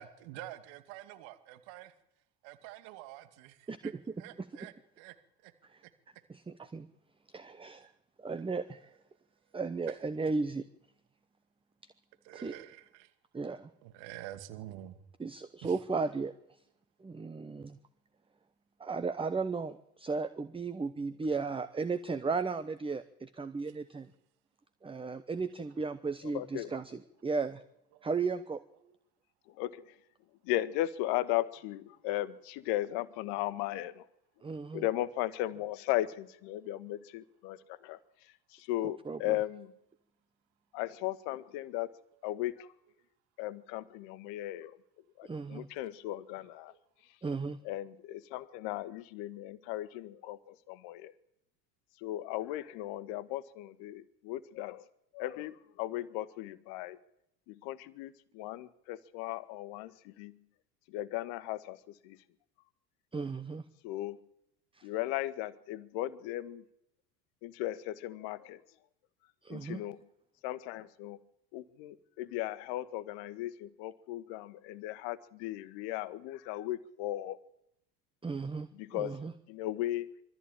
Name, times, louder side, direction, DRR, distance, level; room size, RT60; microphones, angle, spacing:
voice 1, 0.0-1.9 2.4-3.9 4.2-5.2 5.4-5.5 12.2-13.1 13.8-15.0 15.6-15.8 27.9-28.1 28.8-28.9 33.3-33.5 46.7-46.8, right 13 dB, 60° right, 10 dB, 2.6 m, -48 dB
voice 2, 3.7-4.5 5.7-5.8 6.3-6.9 7.3-7.9 8.2-8.9 9.5-10.6 12.3-12.5 13.3-13.7 15.2-16.3 17.0-17.8 18.8-24.1 24.8-27.6 28.0-28.6 34.4-34.8 39.1-39.4 45.2-45.7 47.2-47.6 63.1-63.6 64.7-64.9 69.4-69.8 78.2-78.7 78.9-79.3, right 4 dB, 10° right, 14 dB, 0.9 m, -35 dB
voice 3, 26.2-26.8 29.5-30.0 30.4-34.1 34.7-39.7 40.7-41.9 42.2-42.7 43.4-44.8 45.2-46.7 47.6-51.1 52.0-54.8 55.1-57.0 57.5-60.4 60.9-62.2 63.8-64.2 64.8-66.6 67.4-68.7 69.5-70.0 70.4-71.2 71.5-77.4 78.7-79.2 79.5-80.1, left 15 dB, 55° left, 14 dB, 1.4 m, -37 dB
23.0 x 14.0 x 8.9 m, 0.79 s
hypercardioid pair, 70°, 49 cm